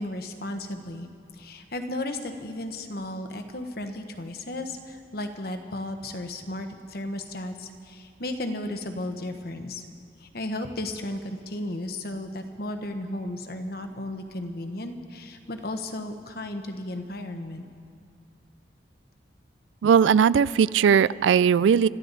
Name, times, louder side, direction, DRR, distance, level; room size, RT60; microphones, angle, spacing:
voice 1, 0.0-9.8 10.2-17.6, left 1 dB, 55° left, 6 dB, 1.1 m, -34 dB
voice 2, 19.8-21.9, right 7 dB, 85° right, 19 dB, 0.3 m, -19 dB
25.5 x 13.5 x 4.1 m, 2.4 s
head